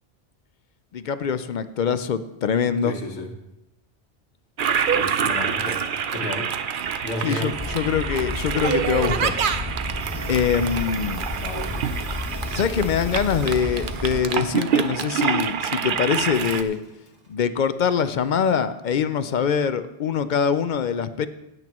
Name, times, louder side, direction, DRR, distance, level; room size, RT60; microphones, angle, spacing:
voice 1, 0.9-2.9 7.2-9.4 10.3-11.3 12.5-16.8 17.3-21.3, left 7 dB, 55° left, 12 dB, 0.6 m, -23 dB
voice 2, 2.8-3.3 4.9-6.5 7.0-7.6 11.3-11.7, left 1 dB, 90° left, 4 dB, 1.5 m, -32 dB
Toilet flush, 4.6-16.6, right 7 dB, 60° right, 0.7 m, -26 dB
sound 1, 7.5-14.2, left 2 dB, 10° left, 1.5 m, -32 dB
Water tap faucet / Sink (filling or washing), 9.7-17.3, right 2 dB, 40° right, 1.6 m, -45 dB
16.5 x 9.2 x 3.0 m, 0.88 s
omnidirectional pair, 1.1 m